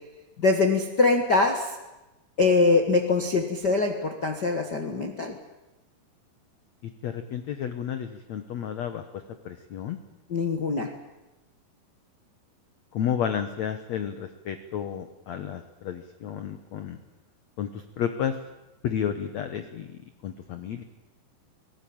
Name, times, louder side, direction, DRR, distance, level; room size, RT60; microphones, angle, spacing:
voice 1, 0.4-1.7 2.4-5.3 10.3-10.9, left 3 dB, 60° left, 3 dB, 1.1 m, -23 dB
voice 2, 7.0-9.0 9.4-10.0 12.9-17.0 17.6-18.3 18.8-20.8, left 9 dB, 75° left, 9 dB, 1.6 m, -31 dB
25.5 x 18.0 x 8.8 m, 1.0 s
omnidirectional pair, 4.8 m